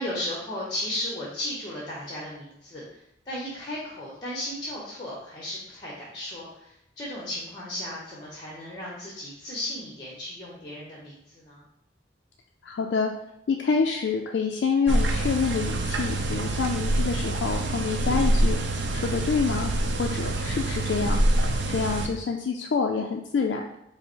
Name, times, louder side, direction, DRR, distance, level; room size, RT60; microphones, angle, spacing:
voice 1, 0.0-2.8 3.3-11.6, left 1 dB, 25° left, -4 dB, 0.8 m, -35 dB
voice 2, 12.6-13.1 13.5-19.7 20.0-23.6, left 5 dB, 70° left, 1 dB, 0.3 m, -27 dB
sound 1, 14.9-22.1, right 1 dB, 80° right, 0.5 m, -25 dB
5.4 x 2.0 x 4.4 m, 0.80 s
head